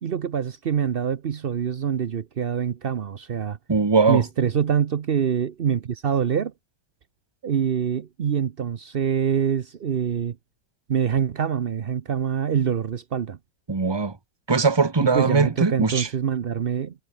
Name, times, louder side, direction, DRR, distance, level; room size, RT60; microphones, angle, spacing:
voice 1, 0.0-3.6 4.1-6.5 7.4-10.4 10.9-13.4 15.0-16.9, right 8 dB, 85° right, 0.5 m, -25 dB
voice 2, 3.7-4.2 13.7-14.1 14.5-16.1, right 4 dB, 20° right, 0.8 m, -20 dB
omnidirectional pair, 2.1 m